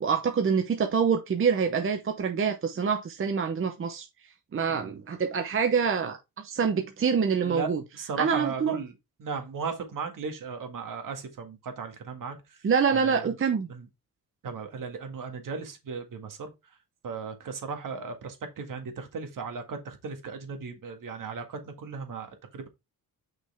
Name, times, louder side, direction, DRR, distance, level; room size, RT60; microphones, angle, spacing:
voice 1, 0.0-4.1 4.5-7.8 8.2-8.8 12.6-13.7, right 6 dB, 35° right, 0.8 m, -26 dB
voice 2, 7.4-8.9 9.2-12.4 12.9-13.3 13.7-13.9 14.4-16.5 17.0-22.3 22.5-22.7, right 5 dB, 55° right, 1.9 m, -36 dB
6.0 x 5.5 x 3.5 m
cardioid pair, 105°, 37 cm